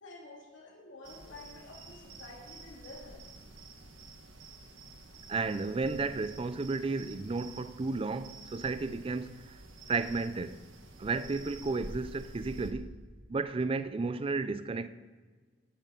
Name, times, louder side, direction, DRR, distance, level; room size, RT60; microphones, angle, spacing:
voice 1, 0.0-3.3, left 2 dB, 75° left, 2.3 m, -50 dB
sound 1, 1.0-12.7, right 2 dB, 90° right, 1.4 m, -49 dB
voice 2, 5.3-9.6 9.9-10.6 11.0-12.9 13.3-14.9, right 3 dB, 30° right, 0.4 m, -33 dB
13.5 x 11.5 x 3.8 m
head